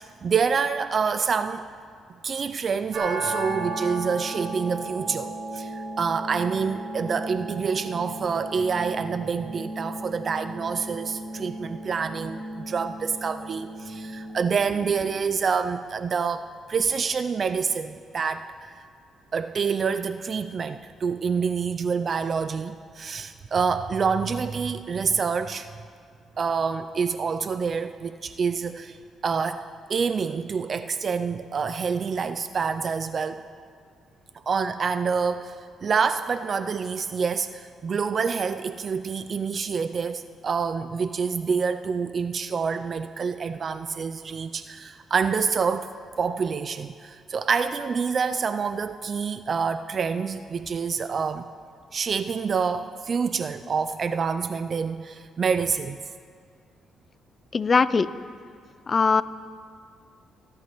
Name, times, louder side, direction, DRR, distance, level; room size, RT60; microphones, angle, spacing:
voice 1, 0.0-1.7 2.2-18.9 19.3-25.7 26.4-29.0 29.2-33.4 34.5-45.9 46.2-51.5 51.9-56.1, right 5 dB, 45° right, 11 dB, 0.3 m, -27 dB
sound 1, 2.9-14.9, right 2 dB, 65° right, 2.0 m, -35 dB
voice 2, 57.5-58.1 58.9-59.2, left 5 dB, 40° left, 16 dB, 0.4 m, -20 dB
18.5 x 11.5 x 3.0 m, 2.2 s
cardioid pair, 90°, 0 cm